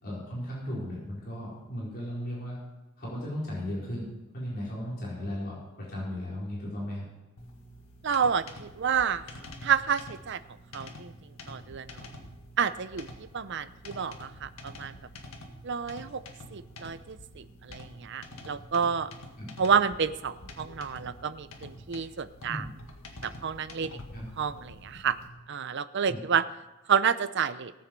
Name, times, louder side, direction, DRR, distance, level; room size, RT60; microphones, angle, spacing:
voice 1, 0.0-2.6 3.0-7.1 19.4-19.5 22.5-22.7 24.1-24.3 26.1-26.2, equal, 45° left, -6 dB, 4.4 m, -36 dB
sound 1, 7.4-25.3, left 1 dB, 70° left, 1.9 m, -47 dB
voice 2, 8.0-9.2 9.6-10.4 10.7-11.1 11.5-12.1 12.6-13.1 13.3-14.9 15.6-16.2 16.5-19.1 19.6-22.6 23.2-24.0 24.4-25.2 25.5-26.4 26.9-27.7, right 7 dB, 55° right, 14 dB, 0.6 m, -29 dB
18.0 x 7.8 x 5.3 m, 1.1 s
head